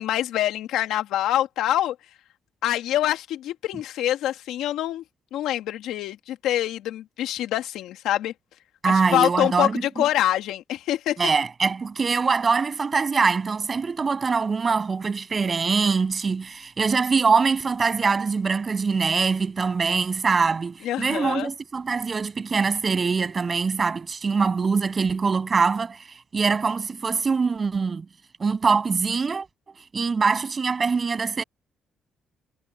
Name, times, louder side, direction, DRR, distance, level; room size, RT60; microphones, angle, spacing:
voice 1, 0.0-2.0 2.6-5.0 5.3-8.3 8.9-11.2 20.8-21.5, left 12 dB, 90° left, 2.2 m, -25 dB
voice 2, 8.8-9.8 11.2-26.1 26.3-28.1 28.4-29.5 29.9-31.4, right 5 dB, 35° right, 7.9 m, -23 dB
cardioid pair, 90°, 0 cm